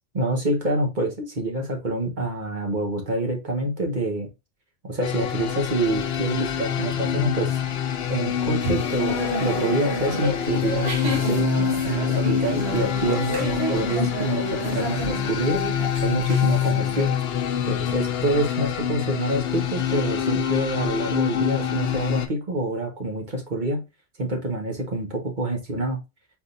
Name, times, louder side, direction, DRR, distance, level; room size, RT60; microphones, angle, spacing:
voice 1, 0.1-4.3 4.8-7.6 8.1-17.1 17.7-23.8 24.2-26.0, right 2 dB, 45° right, 2 dB, 1.5 m, -26 dB
sound 1, 5.0-22.3, left 9 dB, 65° left, 0.8 m, -26 dB
sound 2, 8.6-17.1, right 2 dB, 70° right, 1.2 m, -31 dB
4.6 x 3.8 x 2.5 m, 0.24 s
omnidirectional pair, 1.1 m